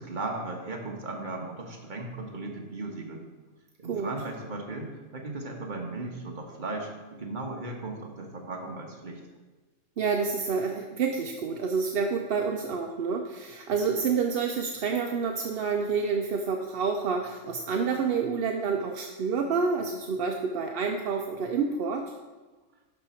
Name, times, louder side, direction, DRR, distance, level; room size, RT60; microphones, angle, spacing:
voice 1, 0.0-3.2 3.8-9.2, right 2 dB, 35° right, 0 dB, 1.4 m, -36 dB
voice 2, 10.0-22.1, right 5 dB, 55° right, 3 dB, 0.7 m, -28 dB
11.5 x 5.4 x 4.4 m, 1.3 s
omnidirectional pair, 1.4 m